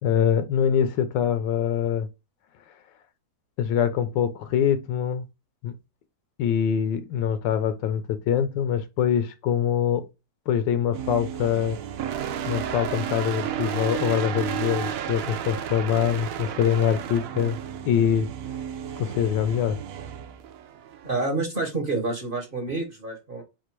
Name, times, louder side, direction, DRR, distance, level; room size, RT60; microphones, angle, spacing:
voice 1, 0.0-2.1 3.6-5.2 5.6-5.7 6.4-10.1 10.5-11.8 12.5-17.6 17.9-18.3 19.0-19.8, left 8 dB, 75° left, 1.3 m, -24 dB
sound 1, 10.9-21.2, right 9 dB, 80° right, 0.7 m, -33 dB
voice 2, 21.0-23.4, right 3 dB, 35° right, 1.0 m, -28 dB
4.2 x 2.5 x 4.5 m
omnidirectional pair, 2.0 m